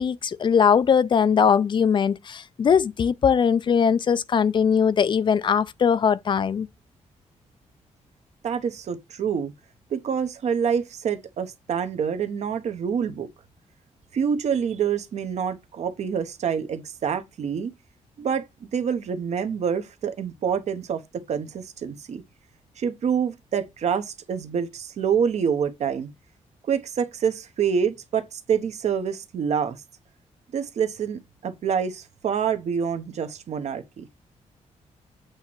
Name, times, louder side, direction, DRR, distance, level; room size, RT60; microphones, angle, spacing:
voice 1, 0.0-6.7, left 7 dB, 40° left, 0.4 m, -20 dB
voice 2, 8.4-9.5 9.9-13.3 14.1-17.7 18.2-18.4 18.7-22.2 22.8-26.1 26.7-29.8 30.5-34.1, right 7 dB, 65° right, 1.0 m, -26 dB
8.0 x 3.0 x 6.0 m
cardioid pair, 125°, 12 cm